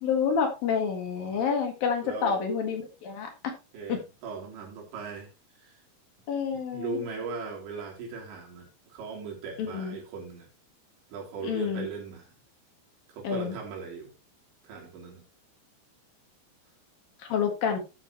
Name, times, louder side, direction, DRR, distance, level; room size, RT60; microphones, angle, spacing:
voice 1, 0.0-3.5 3.9-4.0 6.3-7.0 9.6-10.0 11.4-11.9 13.2-13.6 17.2-17.8, left 6 dB, 60° left, 4 dB, 3.3 m, -28 dB
voice 2, 2.0-2.4 3.7-5.3 5.6-5.8 6.5-10.5 11.1-12.3 13.1-14.1 14.6-15.2, right 4 dB, 80° right, -1 dB, 5.6 m, -39 dB
13.0 x 7.8 x 2.9 m, 0.27 s
omnidirectional pair, 5.1 m